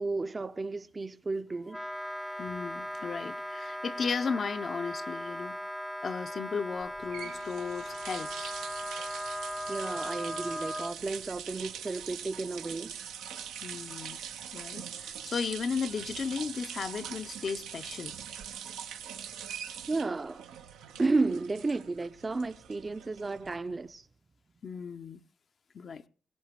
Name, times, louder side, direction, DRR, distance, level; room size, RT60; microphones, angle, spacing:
voice 1, 0.0-1.8 9.7-12.9 19.9-20.5 21.0-24.1, right 3 dB, 35° right, 0.6 m, -32 dB
Wind instrument woodwind instrument, 1.7-10.9, equal, 5° left, 0.6 m, -38 dB
voice 2, 2.4-5.6 6.0-8.5 13.6-14.2 14.5-18.1 24.6-25.2 25.7-26.0, left 5 dB, 60° left, 0.7 m, -35 dB
sound 1, 6.8-23.8, right 8 dB, 90° right, 0.8 m, -43 dB
21.5 x 17.5 x 3.0 m
supercardioid pair, 50°, 0 cm